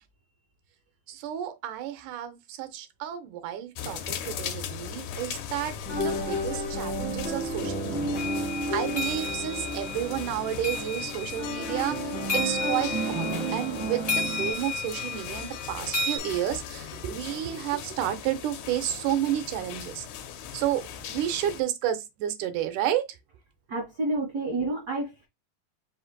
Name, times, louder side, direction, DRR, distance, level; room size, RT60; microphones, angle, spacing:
voice 1, 1.1-20.1 20.5-23.1, right 11 dB, 80° right, 2.1 m, -31 dB
sound 1, 3.8-21.6, left 7 dB, 75° left, 2.0 m, -39 dB
sound 2, 5.9-14.5, right 1 dB, 20° right, 0.6 m, -32 dB
sound 3, 8.2-16.2, left 3 dB, 50° left, 0.7 m, -33 dB
voice 2, 23.7-25.3, right 2 dB, 60° right, 1.0 m, -29 dB
5.0 x 2.6 x 3.9 m
omnidirectional pair, 3.8 m